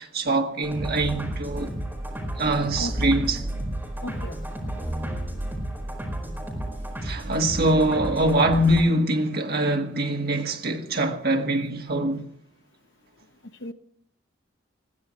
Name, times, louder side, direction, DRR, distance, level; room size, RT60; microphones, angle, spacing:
voice 1, 0.0-1.7 2.4-3.5 7.0-12.3, right 1 dB, 55° right, 1.8 m, -23 dB
sound 1, 0.6-8.8, right 1 dB, 10° right, 4.7 m, -32 dB
voice 2, 4.0-4.4 4.7-4.8 13.6-13.7, left 1 dB, 65° left, 0.9 m, -34 dB
21.5 x 15.5 x 3.2 m
head